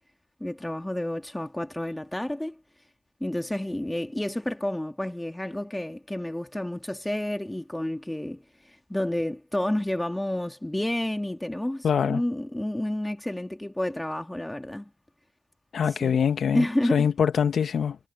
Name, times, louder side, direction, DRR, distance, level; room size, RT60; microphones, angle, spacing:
voice 1, 0.4-2.6 3.2-14.9 15.9-16.2 16.5-17.1, left 1 dB, 10° left, 1.7 m, -30 dB
voice 2, 11.8-12.2 15.7-16.6 16.9-18.0, left 7 dB, 65° left, 0.7 m, -23 dB
supercardioid pair, 50°, 0 cm